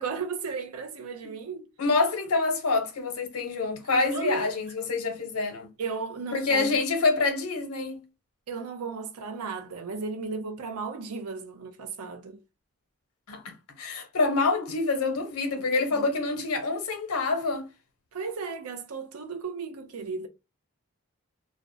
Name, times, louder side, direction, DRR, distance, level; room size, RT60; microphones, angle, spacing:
voice 1, 0.0-1.7 4.1-4.5 5.8-6.8 8.5-12.4 15.5-16.0 18.1-20.3, right 4 dB, 90° right, 0.5 m, -35 dB
voice 2, 1.8-5.7 6.3-8.0 13.3-17.7, left 3 dB, 90° left, 0.8 m, -26 dB
2.4 x 2.1 x 2.5 m
head